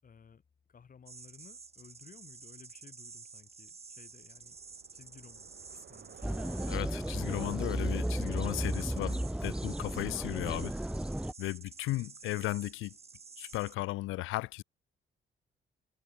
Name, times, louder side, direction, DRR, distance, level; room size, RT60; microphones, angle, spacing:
voice 1, 0.0-0.4 0.7-4.6 4.9-6.2, left 6 dB, 45° left, 6.0 m, -57 dB
sound 1, 1.1-13.7, right 5 dB, 30° right, 2.5 m, -51 dB
Bicycle, 4.0-10.5, right 10 dB, 65° right, 7.6 m, -57 dB
sound 2, 6.2-11.3, right 1 dB, 5° right, 1.3 m, -34 dB
voice 2, 6.7-10.8 11.4-13.0 13.4-14.6, left 18 dB, 85° left, 0.5 m, -35 dB
cardioid pair, 90°, 20 cm